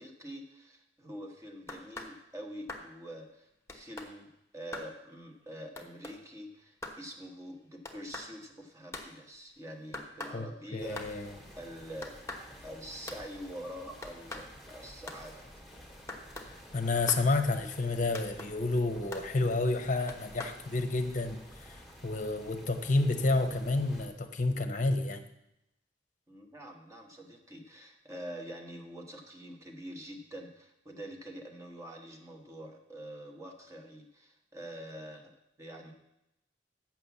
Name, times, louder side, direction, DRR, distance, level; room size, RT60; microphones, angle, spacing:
voice 1, 0.0-12.2 12.6-15.5 26.3-35.9, equal, 15° right, 1 dB, 1.3 m, -46 dB
sound 1, 1.7-2.1 2.7-2.9 3.7-4.1 4.7-4.9 5.8-6.1 6.8-7.0 7.8-8.3 8.9-9.1 9.9-10.4 11.0-11.1 12.0-12.5 13.1-13.2 14.0-14.5 15.1-15.2 16.1-16.5 17.1-17.3 18.1-18.5 19.1-19.3 20.1-20.6, left 2 dB, 15° left, 1.1 m, -42 dB
voice 2, 10.7-11.3 16.7-21.8 22.0-25.2, left 2 dB, 45° left, 7 dB, 0.8 m, -30 dB
sound 2, 10.8-24.1, equal, ahead, 1.9 m, -52 dB
7.8 x 6.0 x 7.1 m, 0.86 s
head